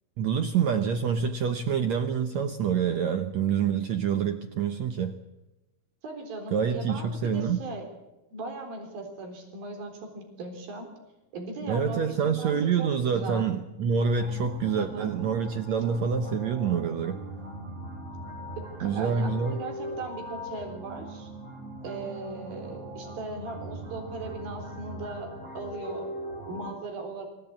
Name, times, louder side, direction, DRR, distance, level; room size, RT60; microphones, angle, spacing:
voice 1, 0.2-5.2 6.5-7.6 11.7-17.2 18.8-19.6, right 6 dB, 85° right, 8 dB, 1.5 m, -27 dB
voice 2, 6.0-7.9 8.3-10.9 11.3-13.5 14.8-15.1 18.8-21.3 21.8-26.1 26.5-27.3, right 3 dB, 65° right, 4 dB, 5.6 m, -38 dB
sound 1, 14.1-26.7, equal, 35° right, 4.7 m, -40 dB
25.0 x 16.5 x 8.8 m, 1.0 s
omnidirectional pair, 4.6 m